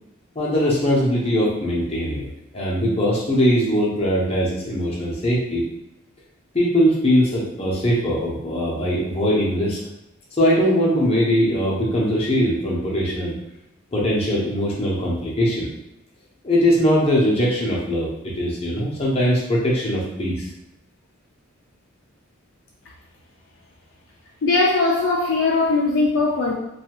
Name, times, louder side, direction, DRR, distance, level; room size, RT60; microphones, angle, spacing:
voice 1, 0.3-5.6 6.5-9.8 10.3-13.4 13.9-15.7 16.4-18.1 18.3-20.5, equal, 30° left, -5 dB, 0.7 m, -21 dB
voice 2, 24.4-26.5, left 3 dB, 60° left, -2 dB, 0.4 m, -19 dB
2.6 x 2.3 x 2.9 m, 0.85 s
head